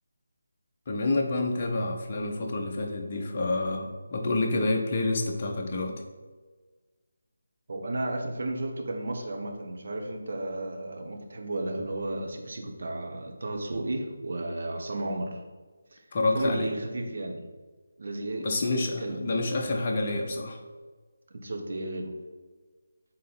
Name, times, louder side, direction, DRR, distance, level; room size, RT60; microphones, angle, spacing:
voice 1, 0.9-6.0 16.1-16.7 18.4-20.6, left 2 dB, 30° left, 1 dB, 0.8 m, -28 dB
voice 2, 7.7-15.4 15.9-16.0 16.3-17.4 18.0-18.5 19.0-19.3 21.3-22.1, right 2 dB, 50° right, 2 dB, 0.9 m, -33 dB
6.6 x 3.9 x 4.0 m, 1.4 s
figure-of-eight pair, 155°, 0 cm